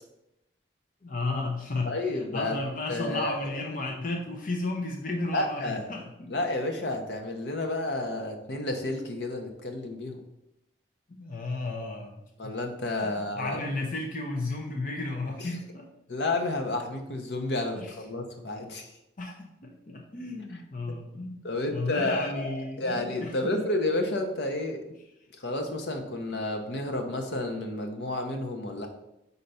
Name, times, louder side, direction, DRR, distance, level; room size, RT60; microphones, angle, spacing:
voice 1, 1.0-1.9 2.3-6.3 11.1-12.5 13.1-15.8 17.8-17.9 19.2-23.6, left 2 dB, 45° left, 1 dB, 0.7 m, -33 dB
voice 2, 1.8-2.6 2.9-3.6 5.3-5.9 6.3-10.2 12.4-13.6 15.4-15.6 16.1-18.9 20.5-20.6 20.9-21.0 21.4-24.8 25.3-28.9, left 2 dB, 70° left, 4 dB, 0.9 m, -31 dB
4.5 x 4.0 x 5.4 m, 0.87 s
head